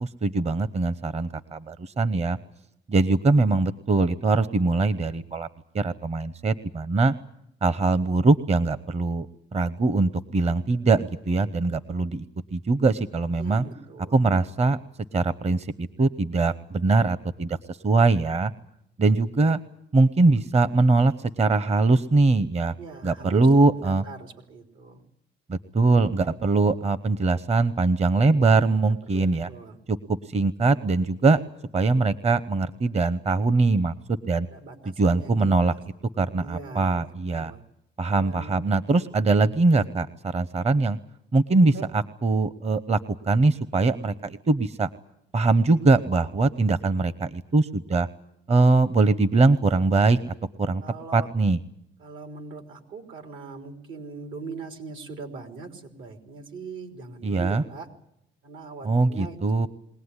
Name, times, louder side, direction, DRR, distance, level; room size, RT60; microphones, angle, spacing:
voice 1, 0.0-2.4 2.9-5.5 5.7-7.1 7.6-9.3 9.5-12.2 12.5-13.6 14.1-14.8 15.1-18.5 19.0-19.6 19.9-22.7 23.0-24.0 25.5-29.5 29.9-31.4 31.7-34.5 35.0-35.7 36.2-37.5 38.0-41.0 41.3-43.0 43.2-44.9 45.3-48.1 48.5-50.8 51.1-51.6 57.2-57.6 58.8-59.7, right 3 dB, 35° right, 15 dB, 0.9 m, -22 dB
voice 2, 13.3-14.2 22.8-23.5 23.7-25.0 29.1-29.8 34.5-35.7 36.4-37.6 38.2-38.6 41.7-41.9 50.8-51.3 52.0-57.9 58.4-59.4, right 4 dB, 80° right, 6 dB, 3.6 m, -40 dB
22.0 x 18.0 x 9.8 m, 0.79 s
cardioid pair, 90°, 20 cm